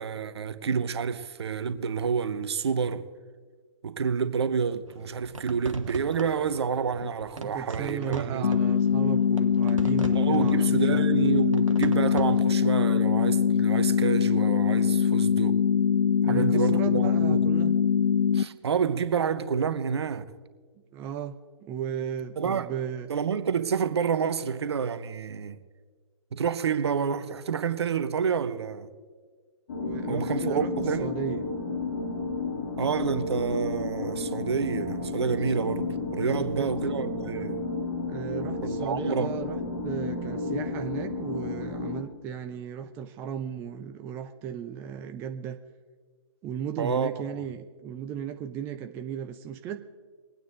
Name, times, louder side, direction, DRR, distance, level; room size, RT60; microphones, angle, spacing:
voice 1, 0.0-3.1 3.8-8.5 10.1-15.6 16.3-17.5 18.3-20.2 22.4-22.7 23.1-25.6 26.3-28.9 30.1-31.1 32.8-37.6 38.6-39.3 46.8-47.2, right 6 dB, 55° right, 0.9 m, -28 dB
sound 1, 4.9-12.4, right 4 dB, 80° right, 1.2 m, -41 dB
voice 2, 7.0-11.0 16.2-17.7 20.9-23.1 29.8-30.7 31.0-31.4 36.4-36.9 38.1-39.6 39.8-45.6 46.4-49.8, right 8 dB, 15° right, 0.4 m, -36 dB
sound 2, 8.4-18.4, left 7 dB, 70° left, 0.5 m, -23 dB
sound 3, 29.7-42.0, left 3 dB, 50° left, 2.3 m, -32 dB
22.5 x 9.3 x 3.7 m
figure-of-eight pair, 130°, 16 cm